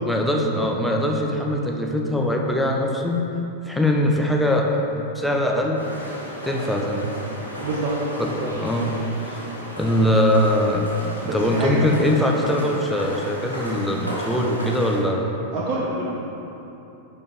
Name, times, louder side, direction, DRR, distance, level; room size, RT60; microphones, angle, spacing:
voice 1, 0.1-3.2 3.7-5.8 6.4-7.1 8.2-8.3 8.6-8.9 9.3-9.4 9.8-10.9 11.3-15.3, left 1 dB, ahead, 0 dB, 0.8 m, -22 dB
sound 1, 5.7-15.0, equal, 85° right, 1.2 m, -34 dB
voice 2, 7.6-7.9 8.3-8.5 11.2-11.8 15.5-16.2, right 2 dB, 40° right, -4 dB, 0.9 m, -27 dB
10.5 x 4.3 x 3.4 m, 3.0 s
figure-of-eight pair, 90°, 0 cm